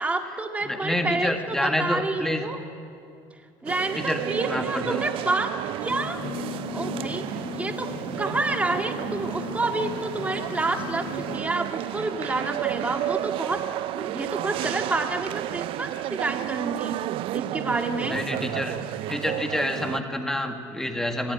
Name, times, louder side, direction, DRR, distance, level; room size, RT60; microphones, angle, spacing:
voice 1, 0.0-2.6 3.6-5.6 5.8-7.2 7.5-7.9 8.2-13.6 13.9-17.0 17.3-18.2, right 2 dB, 15° right, 4 dB, 1.9 m, -29 dB
voice 2, 0.7-2.4 4.0-4.2 4.5-5.1 18.1-18.8 19.1-21.3, left 1 dB, 5° left, 5 dB, 1.8 m, -28 dB
sound 1, 3.7-20.0, right 15 dB, 55° right, 0.4 m, -32 dB
sound 2, 5.8-11.4, left 4 dB, 45° left, 4.0 m, -36 dB
23.0 x 14.5 x 9.6 m, 2.5 s
cardioid pair, 120°, 11 cm